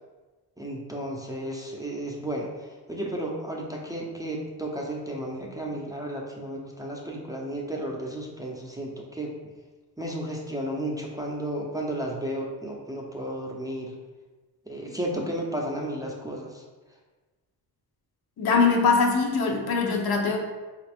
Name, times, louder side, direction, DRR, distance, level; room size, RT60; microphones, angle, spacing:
voice 1, 0.6-9.3 10.0-13.9 14.7-16.6, right 1 dB, 10° right, -3 dB, 0.6 m, -33 dB
voice 2, 18.4-20.4, left 4 dB, 60° left, 1 dB, 0.8 m, -22 dB
4.0 x 2.5 x 3.5 m, 1.3 s
cardioid pair, 75°, 42 cm